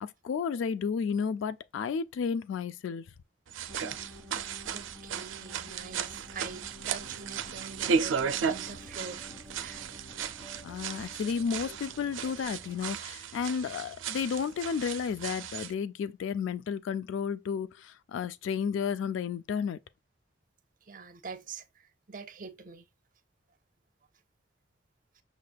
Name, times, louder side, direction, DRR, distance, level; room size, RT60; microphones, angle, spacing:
voice 1, 0.0-3.0 10.6-19.8, left 6 dB, 80° left, 0.3 m, -32 dB
sound 1, 3.5-15.7, right 6 dB, 85° right, 0.4 m, -35 dB
sound 2, 3.7-12.9, left 1 dB, 10° left, 1.2 m, -50 dB
voice 2, 4.7-9.3 9.6-9.8 20.8-22.8, right 4 dB, 45° right, 0.8 m, -45 dB
6.3 x 3.2 x 2.3 m
head